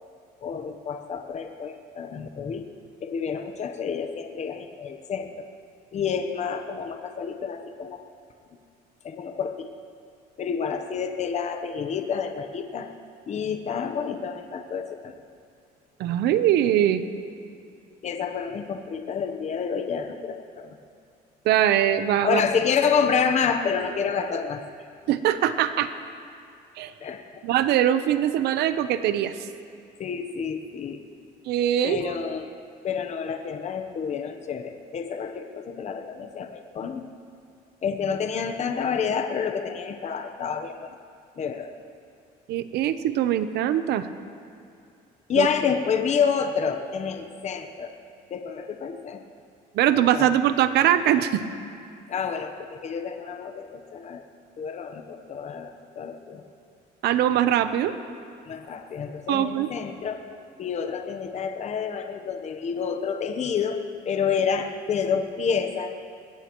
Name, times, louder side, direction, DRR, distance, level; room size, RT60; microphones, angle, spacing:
voice 1, 0.4-2.6 3.0-5.3 5.9-8.0 9.0-9.7 10.4-12.9 13.3-15.1 18.0-20.7 22.2-24.6 27.0-27.4 30.0-31.0 31.8-32.5 32.8-37.1 37.8-41.0 41.4-41.7 45.3-47.9 48.3-49.2 50.1-50.3 52.1-54.2 54.6-56.4 58.5-60.2 60.6-66.0, left 6 dB, 40° left, 6 dB, 0.9 m, -28 dB
voice 2, 16.0-17.0 21.4-22.4 25.1-25.9 26.8-26.9 27.4-29.3 31.5-32.0 42.5-44.1 45.3-45.5 49.7-51.4 57.0-58.0 59.3-59.7, right 11 dB, 80° right, 11 dB, 0.8 m, -22 dB
21.5 x 16.5 x 3.1 m, 2.4 s
cardioid pair, 110°, 17 cm